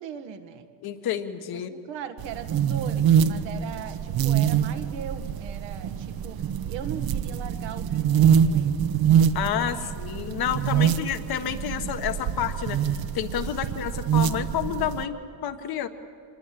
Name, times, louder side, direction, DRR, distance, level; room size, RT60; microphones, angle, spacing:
voice 1, 0.0-0.7 1.5-8.8 9.7-10.0 10.7-10.9, right 8 dB, 75° right, 7 dB, 1.8 m, -39 dB
voice 2, 0.8-1.7 9.3-15.9, left 9 dB, 55° left, 9 dB, 1.5 m, -30 dB
sound 1, 2.2-15.0, right 8 dB, 55° right, 1.1 m, -25 dB
26.0 x 21.0 x 7.8 m, 2.5 s
cardioid pair, 115°, 44 cm